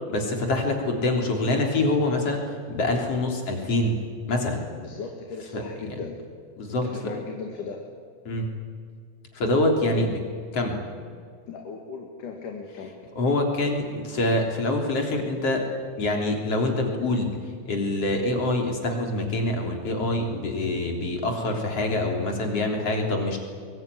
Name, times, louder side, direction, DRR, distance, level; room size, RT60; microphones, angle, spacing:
voice 1, 0.1-4.0 4.3-4.6 5.5-5.6 5.9-6.0 6.6-6.8 8.3-8.5 9.3-10.2 10.5-10.8 13.2-15.7 16.0-17.3 17.6-23.4, left 2 dB, 45° left, 2 dB, 4.5 m, -25 dB
voice 2, 4.8-6.2 6.8-7.8 9.6-10.1 11.5-12.9, left 5 dB, 75° left, 2 dB, 3.6 m, -37 dB
22.5 x 22.5 x 9.9 m, 2.1 s
omnidirectional pair, 3.7 m